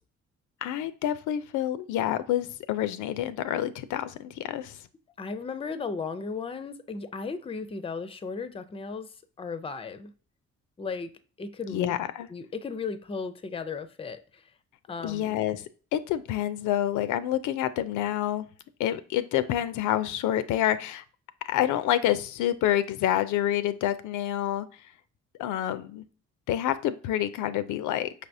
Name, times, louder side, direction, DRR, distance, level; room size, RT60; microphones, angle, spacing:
voice 1, 0.6-4.8 11.7-12.3 15.0-15.6 15.9-18.5 18.8-21.0 21.5-24.7 25.4-26.0 26.5-28.1, left 12 dB, 80° left, 0.4 m, -28 dB
voice 2, 5.2-9.1 9.4-10.1 10.8-11.1 11.4-11.9 12.3-14.5 14.9-15.4, left 4 dB, 20° left, 0.4 m, -35 dB
5.3 x 3.4 x 2.6 m
cardioid pair, 90°, 30 cm